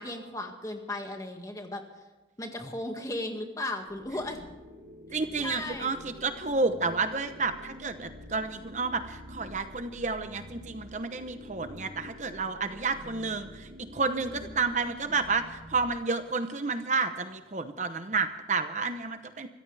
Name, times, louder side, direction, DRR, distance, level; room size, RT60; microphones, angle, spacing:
voice 1, 0.0-1.8 2.4-4.5 5.4-5.9 14.2-15.2, left 1 dB, 20° left, 3 dB, 1.9 m, -36 dB
sound 1, 3.8-15.9, equal, 75° right, 3.1 m, -47 dB
voice 2, 5.1-19.5, right 4 dB, 40° right, 9 dB, 0.9 m, -30 dB
25.0 x 14.5 x 3.4 m, 1.2 s
head